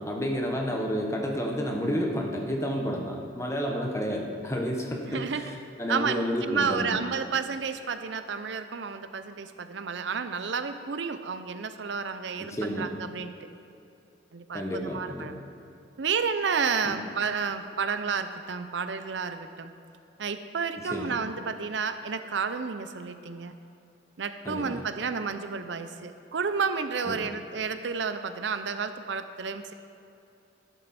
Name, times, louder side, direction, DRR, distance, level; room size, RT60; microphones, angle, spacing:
voice 1, 0.0-5.5 5.8-7.0 12.4-12.9 14.5-15.3 16.9-17.0 20.8-21.2 24.4-24.8 27.1-27.2, equal, 15° left, 1 dB, 1.1 m, -30 dB
voice 2, 5.1-5.4 5.9-13.3 14.3-15.3 16.0-19.7 20.2-23.5 24.2-29.7, right 5 dB, 70° right, 10 dB, 0.6 m, -31 dB
12.0 x 11.0 x 4.2 m, 2.7 s
head